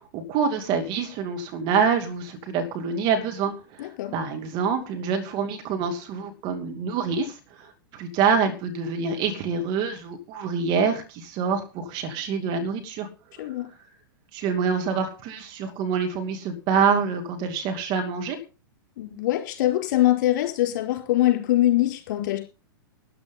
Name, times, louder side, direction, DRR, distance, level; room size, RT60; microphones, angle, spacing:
voice 1, 0.1-13.1 13.4-13.5 14.3-18.4, right 6 dB, 40° right, 5 dB, 2.6 m, -26 dB
voice 2, 3.8-4.1 13.4-13.7 19.0-22.4, left 14 dB, 50° left, 4 dB, 4.6 m, -23 dB
13.0 x 10.0 x 5.6 m, 0.32 s
figure-of-eight pair, 100°, 12 cm